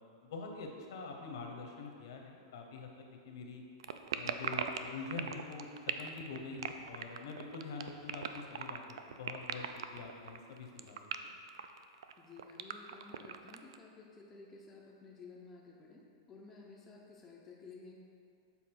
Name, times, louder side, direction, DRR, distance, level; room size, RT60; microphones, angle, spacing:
voice 1, 0.2-3.6 4.1-5.7 6.0-11.3, left 4 dB, 60° left, 2 dB, 0.9 m, -45 dB
sound 1, 3.8-13.8, right 7 dB, 85° right, 0.4 m, -39 dB
voice 2, 12.2-17.9, left 4 dB, 10° left, -2 dB, 0.4 m, -54 dB
7.2 x 4.0 x 4.6 m, 2.4 s
supercardioid pair, 175°, 2 cm